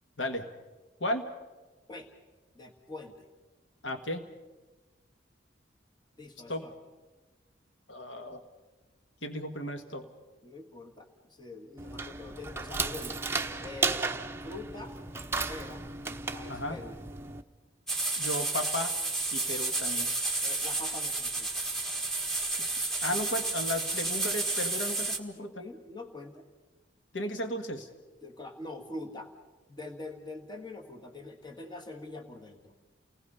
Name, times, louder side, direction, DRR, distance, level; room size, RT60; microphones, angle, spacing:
voice 1, 2.6-3.3 6.2-6.7 10.4-13.2 13.6-14.1 14.4-15.0 15.5-15.8 16.3-17.0 20.4-21.5 25.4-26.4 28.2-29.3 29.7-32.7, left 2 dB, 25° left, 2 dB, 1.8 m, -44 dB
voice 2, 3.8-4.2 6.5-6.7 7.9-8.4 9.2-10.1 16.5-16.8 18.2-18.9 19.3-20.1 22.6-22.7 23.0-25.5 27.1-27.9, left 1 dB, 75° left, 7 dB, 1.5 m, -34 dB
sound 1, 11.8-17.4, right 4 dB, 15° right, 0.8 m, -34 dB
sound 2, 17.9-25.2, right 2 dB, 5° left, 1.6 m, -31 dB
29.5 x 19.5 x 5.6 m, 1.2 s
head